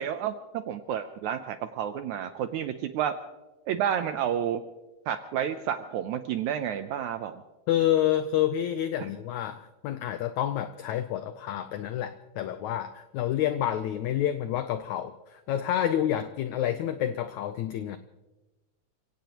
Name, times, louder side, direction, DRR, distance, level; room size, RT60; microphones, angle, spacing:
voice 1, 0.0-3.1 3.7-4.6 5.1-7.4 9.0-9.1, right 9 dB, 80° right, 9 dB, 1.7 m, -30 dB
voice 2, 7.7-18.0, left 11 dB, 85° left, 10 dB, 1.6 m, -28 dB
29.0 x 17.0 x 3.0 m, 1.1 s
omnidirectional pair, 4.0 m